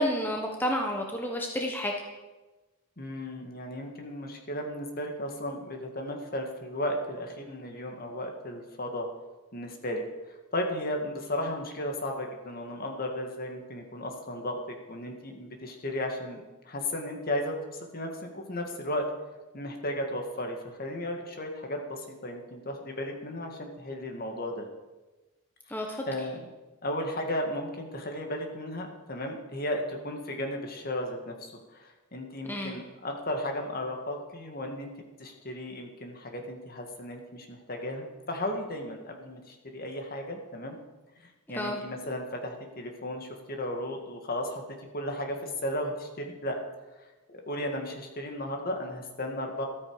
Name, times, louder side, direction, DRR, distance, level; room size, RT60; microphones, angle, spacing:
voice 1, 0.0-1.9 25.7-26.0 32.4-32.8 41.5-41.8, equal, 10° left, 1 dB, 1.1 m, -30 dB
voice 2, 3.0-9.1 9.5-17.6 17.9-19.1 19.5-24.7 25.7-25.8 26.1-26.4 26.8-34.9 35.2-40.7 41.2-44.6 44.9-46.6 47.3-49.6, left 1 dB, 45° left, 3 dB, 1.9 m, -35 dB
13.5 x 13.0 x 4.8 m, 1.2 s
head